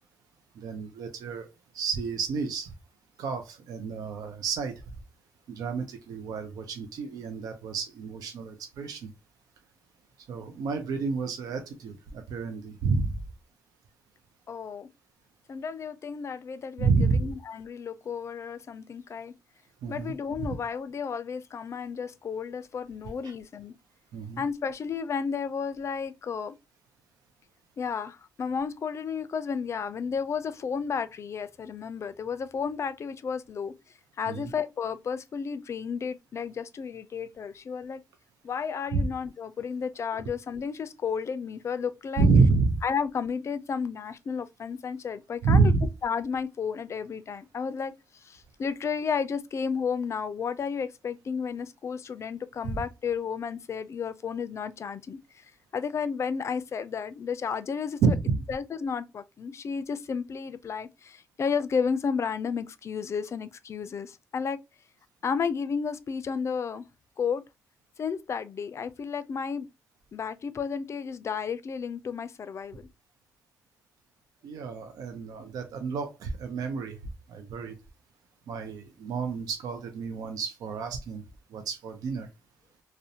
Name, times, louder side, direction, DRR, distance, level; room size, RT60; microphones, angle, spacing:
voice 1, 0.6-1.5 1.7-2.7 3.2-4.8 5.5-9.1 10.3-13.1 16.8-17.2 19.8-20.1 24.1-24.4 34.3-34.5 38.9-39.1 42.2-42.8 45.4-45.9 52.6-52.8 58.0-58.4 74.4-77.0 77.3-77.8 78.5-81.2 81.5-82.3, right 4 dB, 80° right, 0.4 m, -28 dB
voice 2, 14.5-14.9 15.5-19.3 19.9-23.8 24.4-26.6 27.8-33.7 34.2-38.0 38.4-42.3 42.8-45.7 46.0-55.5 55.7-58.1 58.5-64.6 65.2-66.9 67.2-67.4 68.0-69.7 70.1-72.9, left 6 dB, 50° left, 0.3 m, -32 dB
2.5 x 2.1 x 2.7 m
supercardioid pair, 65°, 6 cm